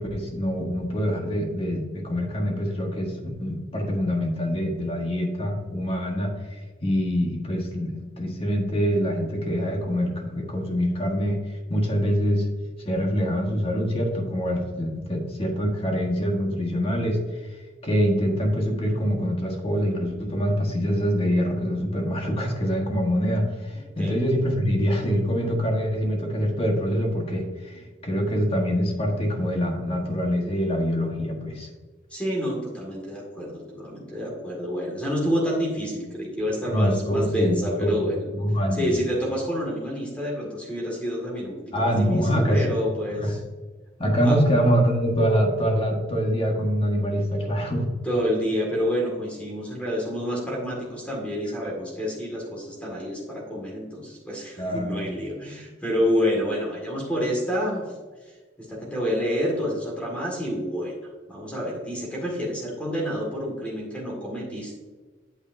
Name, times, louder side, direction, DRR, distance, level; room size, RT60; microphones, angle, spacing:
voice 1, 0.0-6.3 6.8-11.4 11.7-12.5 12.8-17.5 17.8-31.7 36.7-38.0 38.3-38.9 41.7-42.6 43.2-43.3 44.0-47.8 54.6-55.0, equal, 30° left, 1 dB, 1.6 m, -25 dB
voice 2, 32.1-38.3 38.7-43.4 44.2-44.4 48.0-57.8 58.2-58.3 58.6-61.0 61.3-64.7, equal, 5° left, -3 dB, 2.0 m, -28 dB
8.8 x 8.1 x 2.7 m, 1.4 s
head